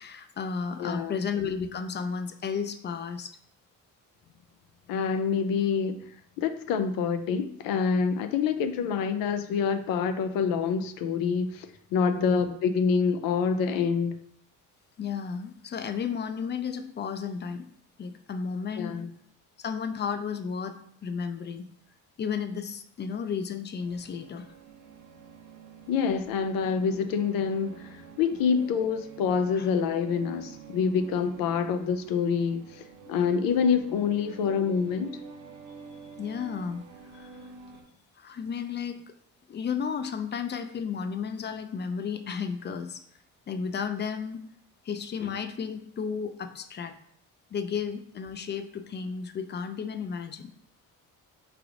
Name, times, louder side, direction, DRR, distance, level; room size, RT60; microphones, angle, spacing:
voice 1, 0.0-3.4 12.1-12.5 15.0-17.7 18.0-19.0 19.6-20.8 21.0-21.7 22.2-24.5 29.5-29.7 36.2-36.9 37.1-37.3 38.2-39.0 39.5-43.0 43.5-44.4 44.8-46.9 47.5-50.5, left 6 dB, 35° left, 9 dB, 0.4 m, -33 dB
voice 2, 0.8-1.2 4.9-5.9 6.4-14.2 18.8-19.1 25.9-27.9 28.2-35.1, left 6 dB, 85° left, 9 dB, 0.5 m, -26 dB
sound 1, 23.8-37.8, right 6 dB, 65° right, 0.8 m, -47 dB
4.6 x 3.4 x 2.5 m, 0.65 s
cardioid pair, 95°, 33 cm